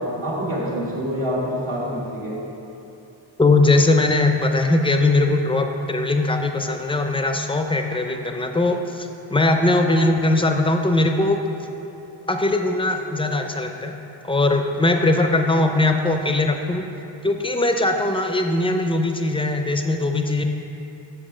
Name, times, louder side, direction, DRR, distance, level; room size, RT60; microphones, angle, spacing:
voice 1, 0.0-2.4, equal, 80° right, -10 dB, 1.6 m, -26 dB
voice 2, 3.4-11.4 12.3-13.9 14.2-16.9 17.2-20.4, left 2 dB, 10° left, 4 dB, 0.5 m, -20 dB
7.6 x 6.9 x 5.0 m, 2.9 s
wide cardioid pair, 125°, 48 cm